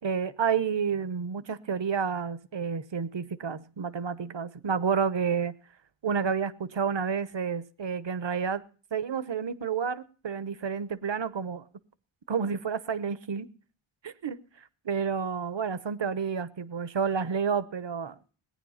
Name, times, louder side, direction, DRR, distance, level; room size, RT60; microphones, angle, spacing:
voice 1, 0.0-5.5 6.0-8.6 8.9-11.6 12.3-13.5 14.0-14.4 14.8-18.1, right 6 dB, 60° right, 1.0 m, -30 dB
18.5 x 9.5 x 5.6 m
wide cardioid pair, 50°, 49 cm